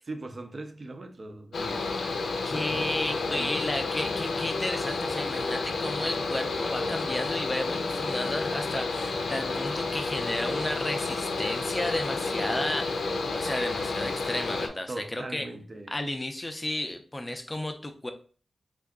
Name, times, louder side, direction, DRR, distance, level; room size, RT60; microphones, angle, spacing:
voice 1, 0.1-3.6 14.9-16.0, right 2 dB, 40° right, 0.5 m, -41 dB
Mechanical fan, 1.5-14.7, left 3 dB, 85° left, 0.5 m, -30 dB
voice 2, 2.4-15.4 15.9-18.1, left 1 dB, 15° left, 0.4 m, -33 dB
3.6 x 2.3 x 3.5 m
wide cardioid pair, 130°, 0 cm